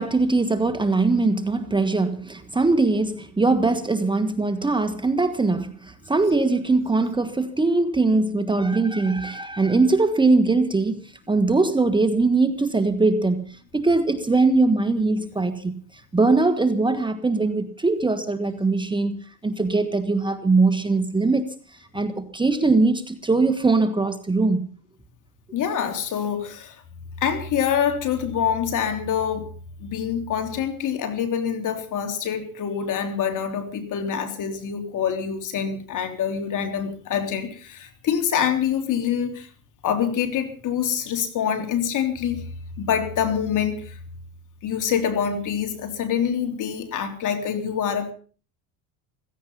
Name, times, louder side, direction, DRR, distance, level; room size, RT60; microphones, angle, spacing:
voice 1, 0.0-15.8 16.1-21.5 21.9-24.7, right 3 dB, 10° right, 1.6 m, -21 dB
voice 2, 25.5-26.8 27.2-29.5 29.8-39.5 39.8-42.5 42.8-44.0 44.6-48.1, left 8 dB, 50° left, 3.5 m, -25 dB
16.5 x 16.0 x 5.6 m
supercardioid pair, 110°, 40 cm